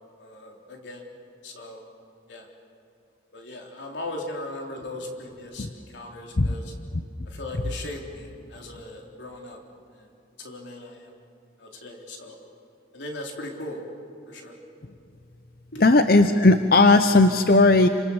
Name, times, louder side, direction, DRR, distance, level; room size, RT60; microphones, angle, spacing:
voice 1, 0.2-1.1 1.4-1.9 2.3-2.5 3.3-6.7 7.3-9.6 9.9-10.1 10.4-11.1 11.6-12.4 12.9-13.8 14.3-14.6 15.7-15.8, left 1 dB, 85° left, 1 dB, 3.9 m, -38 dB
voice 2, 15.8-17.9, left 2 dB, 55° left, 9 dB, 0.7 m, -16 dB
28.0 x 26.0 x 7.2 m, 2.6 s
head